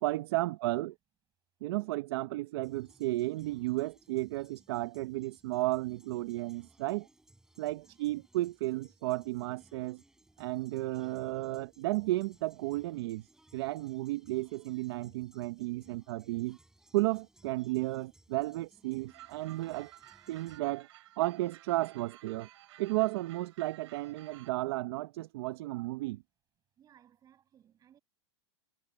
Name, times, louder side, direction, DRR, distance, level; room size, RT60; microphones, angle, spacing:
voice 1, 0.0-0.9 1.6-7.1 7.6-10.0 10.4-16.6 16.9-19.9 20.3-20.9 21.2-22.5 22.8-26.2, right 18 dB, 60° right, 0.8 m, -33 dB
sound 1, 2.6-20.6, right 1 dB, 5° right, 6.2 m, -64 dB
voice 2, 9.8-10.3 15.7-15.8 26.8-28.0, right 10 dB, 25° right, 7.8 m, -64 dB
sound 2, 19.1-24.5, right 14 dB, 75° right, 3.5 m, -55 dB
supercardioid pair, 145°, 15 cm